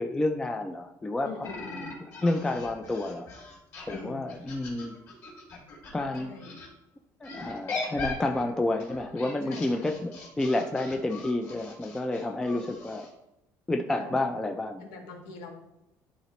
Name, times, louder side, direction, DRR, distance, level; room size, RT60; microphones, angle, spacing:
voice 1, 0.0-1.5 2.2-3.3 3.9-4.9 5.9-6.3 7.2-13.1 13.7-14.8, left 2 dB, 10° left, 5 dB, 0.3 m, -30 dB
voice 2, 1.2-1.9 3.9-4.2 6.2-6.5 9.4-9.8 14.0-14.1 14.8-15.5, left 4 dB, 85° left, 2 dB, 1.5 m, -42 dB
sound 1, 1.4-6.7 7.2-13.1, left 3 dB, 45° left, 2.4 m, -40 dB
11.0 x 4.1 x 3.0 m, 0.92 s
cardioid pair, 170°, 7 cm